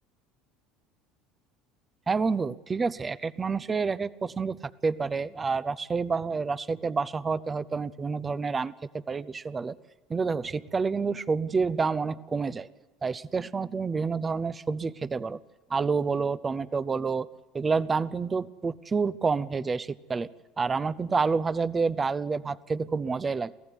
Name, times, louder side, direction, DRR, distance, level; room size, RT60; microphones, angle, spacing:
voice 1, 2.1-8.7 9.1-9.8 10.1-12.7 13.0-15.4 15.7-17.3 17.5-20.3 20.6-23.5, right 4 dB, 25° right, 18 dB, 0.7 m, -28 dB
24.0 x 15.5 x 9.7 m, 1.2 s
supercardioid pair, 95°, 0 cm